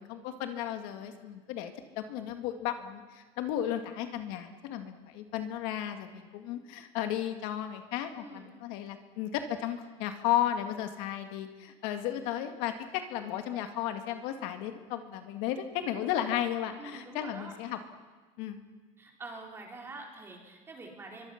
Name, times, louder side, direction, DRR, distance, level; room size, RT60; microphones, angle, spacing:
voice 1, 0.0-17.8 18.4-18.6, left 11 dB, 70° left, 6 dB, 2.0 m, -34 dB
voice 2, 16.8-17.6 19.0-21.3, right 3 dB, 15° right, 0 dB, 4.1 m, -46 dB
27.0 x 24.0 x 5.9 m, 1.4 s
cardioid pair, 165°, 15 cm